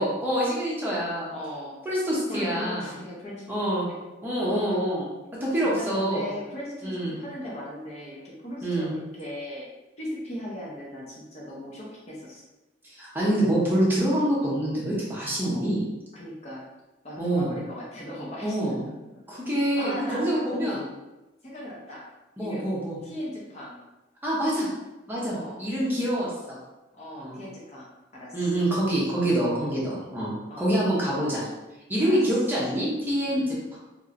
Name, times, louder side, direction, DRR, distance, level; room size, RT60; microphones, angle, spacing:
voice 1, 0.0-1.3 1.8-2.9 3.5-3.9 4.2-5.1 5.4-6.3 6.8-7.1 8.6-8.9 12.8-15.8 17.2-17.5 18.4-18.9 19.3-20.8 22.4-23.0 24.2-24.7 25.1-26.6 27.1-27.4 28.3-31.4 31.9-33.8, right 1 dB, 10° right, -7 dB, 0.8 m, -26 dB
voice 2, 0.9-1.8 2.3-3.4 3.9-4.0 5.8-9.6 10.0-12.4 15.4-15.7 16.1-16.7 17.0-18.6 19.0-19.2 19.8-20.8 21.4-22.1 22.4-22.7 23.0-23.8 25.2-25.6 26.9-28.5 29.2-29.7 30.5-30.7 32.0-32.2 33.2-33.5, equal, 35° left, -4 dB, 0.6 m, -38 dB
3.0 x 2.9 x 2.5 m, 1.0 s
head